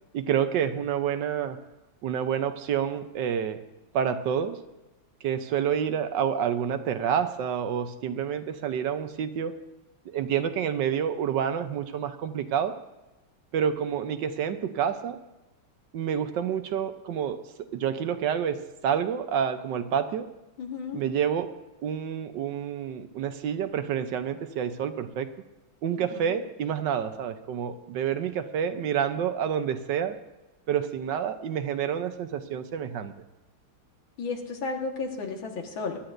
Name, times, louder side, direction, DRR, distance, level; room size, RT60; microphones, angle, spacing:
voice 1, 0.1-1.6 2.0-3.6 3.9-4.6 5.2-9.5 10.0-12.8 13.5-15.2 15.9-20.3 20.9-25.3 25.8-30.2 30.7-33.1, right 8 dB, 70° right, 9 dB, 1.4 m, -28 dB
voice 2, 20.6-21.0 26.0-26.4 34.2-36.0, left 4 dB, 85° left, 2 dB, 2.3 m, -33 dB
21.5 x 11.5 x 2.6 m, 1.0 s
omnidirectional pair, 2.1 m